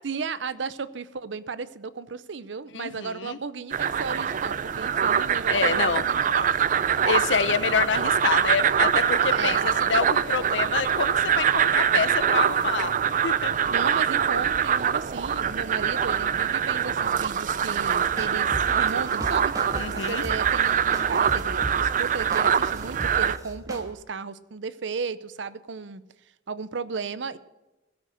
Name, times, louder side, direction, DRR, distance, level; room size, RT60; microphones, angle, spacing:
voice 1, 0.0-6.5 9.3-9.7 13.7-19.5 19.9-26.0 26.5-27.4, right 5 dB, 80° right, 15 dB, 0.7 m, -34 dB
voice 2, 2.7-3.4 5.5-6.0 7.0-12.9 13.2-13.5 19.7-20.2, left 6 dB, 90° left, 14 dB, 0.7 m, -27 dB
sound 1, 3.7-23.4, right 8 dB, 45° right, 0.4 m, -24 dB
sound 2, 18.0-23.9, equal, 20° right, 1.6 m, -37 dB
16.0 x 6.5 x 6.3 m, 1.0 s
head